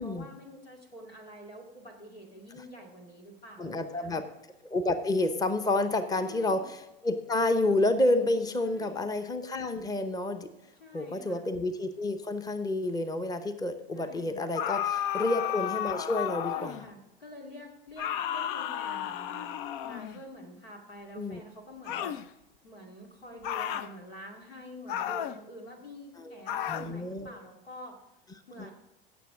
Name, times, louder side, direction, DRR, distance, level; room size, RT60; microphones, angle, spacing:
voice 1, 0.0-4.2 6.2-6.6 8.6-9.1 10.8-11.4 13.9-14.5 16.4-22.2 22.6-28.0 28.5-28.7, equal, 90° left, 1 dB, 2.3 m, -47 dB
voice 2, 3.6-4.3 4.6-6.8 7.0-10.5 10.9-16.8 21.2-21.4 26.7-27.3, left 2 dB, 15° left, 10 dB, 0.8 m, -29 dB
sound 1, 14.5-16.9 18.0-20.2 21.9-22.3 23.4-23.9 24.9-25.4 26.5-26.9, left 11 dB, 60° left, 0.6 m, -33 dB
16.5 x 6.9 x 3.6 m, 0.96 s
hypercardioid pair, 80°, 29 cm